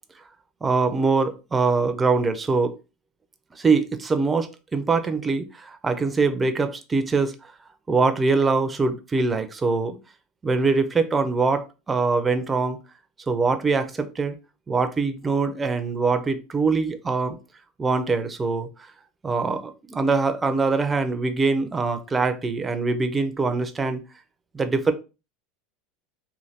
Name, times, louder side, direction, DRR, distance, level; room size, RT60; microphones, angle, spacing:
voice 1, 0.6-2.8 3.6-7.3 7.9-10.0 10.4-12.8 13.3-14.4 14.7-17.4 17.8-18.7 19.2-24.0 24.5-24.9, right 4 dB, 15° right, 0.4 m, -23 dB
3.1 x 2.2 x 2.7 m
supercardioid pair, 130°, 0 cm